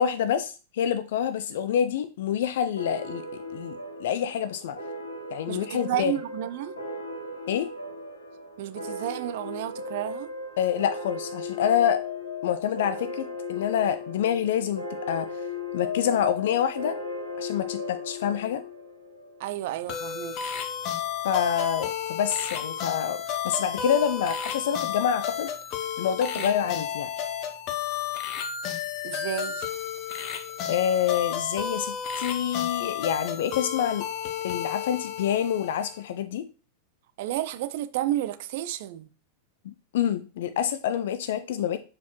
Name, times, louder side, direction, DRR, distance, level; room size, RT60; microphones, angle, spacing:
voice 1, 0.0-4.8 5.3-6.1 7.5-7.7 10.6-12.0 12.4-15.3 15.7-17.0 17.4-18.6 21.2-25.5 26.0-27.1 30.7-34.1 34.4-36.5 39.7-41.8, left 9 dB, 55° left, 0.4 m, -27 dB
sound 1, 2.8-19.9, left 3 dB, 80° left, 1.6 m, -36 dB
voice 2, 5.5-6.7 8.6-10.3 19.4-20.6 26.4-26.5 29.0-29.7 37.2-39.1, right 13 dB, 50° right, 0.5 m, -31 dB
sound 2, 19.9-36.1, left 8 dB, 40° left, 0.8 m, -32 dB
6.9 x 4.7 x 3.0 m
figure-of-eight pair, 90°, 0 cm